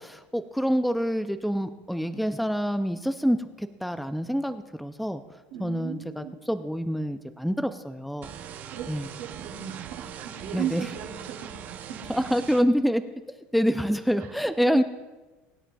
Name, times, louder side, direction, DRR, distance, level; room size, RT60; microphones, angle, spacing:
voice 1, 0.0-5.2 5.6-8.3 8.9-9.1 10.5-10.9 12.1-13.0 13.5-14.8, equal, ahead, 10 dB, 0.3 m, -26 dB
voice 2, 5.5-6.3 8.7-8.9 9.2-12.2 14.2-14.3 14.7-14.8, right 9 dB, 85° right, -2 dB, 2.8 m, -36 dB
sound 1, 8.2-12.6, right 9 dB, 35° right, 0.6 m, -41 dB
23.5 x 10.0 x 2.3 m, 1.2 s
cardioid pair, 160°, 5 cm